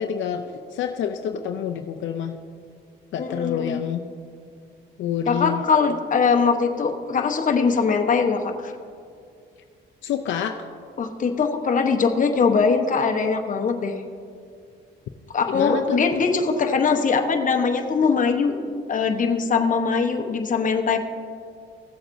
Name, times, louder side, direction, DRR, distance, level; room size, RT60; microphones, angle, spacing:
voice 1, 0.0-2.4 3.1-4.0 5.0-5.6 10.0-10.6 15.5-16.0, left 8 dB, 75° left, 5 dB, 0.5 m, -28 dB
voice 2, 3.2-3.8 5.3-8.7 11.0-14.0 15.3-18.6 18.9-21.0, left 5 dB, 40° left, 4 dB, 1.0 m, -21 dB
16.0 x 7.8 x 2.6 m, 2.3 s
cardioid pair, 90°, 20 cm